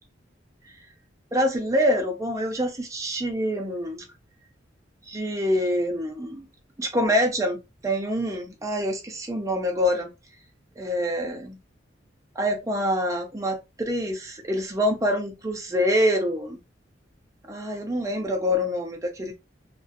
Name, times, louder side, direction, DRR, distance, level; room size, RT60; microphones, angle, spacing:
voice 1, 1.3-4.0 5.1-6.5 6.8-10.1 10.8-11.6 12.4-16.6 17.5-19.3, equal, 15° right, 0.5 m, -26 dB
2.4 x 2.1 x 2.5 m
head